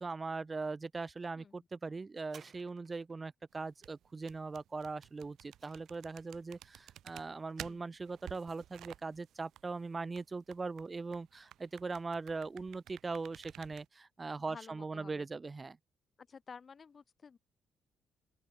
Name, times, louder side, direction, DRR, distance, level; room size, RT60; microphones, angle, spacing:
voice 1, 0.0-15.8, right 4 dB, 25° right, 4.3 m, -40 dB
voice 2, 1.3-1.7 7.6-7.8 14.5-15.3 16.2-17.4, left 5 dB, 40° left, 6.7 m, -53 dB
sound 1, 2.2-3.3 5.0-6.4 7.2-7.3, right 7 dB, 55° right, 7.8 m, -60 dB
sound 2, 3.6-13.9, right 12 dB, 75° right, 6.7 m, -53 dB
open air
cardioid pair, 90°, 0 cm